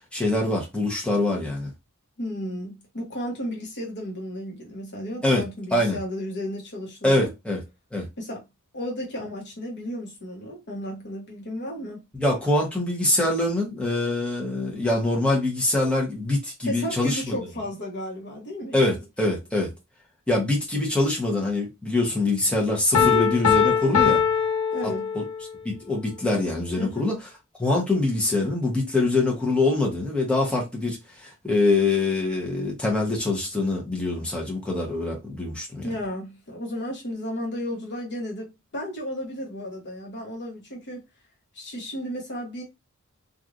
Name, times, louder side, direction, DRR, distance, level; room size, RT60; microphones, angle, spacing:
voice 1, 0.1-1.7 5.2-5.4 5.7-6.0 7.0-7.6 7.9-8.1 12.2-17.4 18.7-19.7 20.3-24.2 24.8-25.2 25.6-27.2 27.6-35.9, left 2 dB, 5° left, 1.0 m, -24 dB
voice 2, 2.2-7.3 8.2-8.4 8.7-12.0 16.6-19.0 23.0-23.2 24.7-25.1 26.7-27.1 35.8-41.0 41.5-42.6, equal, 55° left, 1.2 m, -33 dB
Piano, 22.9-25.5, left 7 dB, 75° left, 0.7 m, -21 dB
3.1 x 2.6 x 2.5 m
head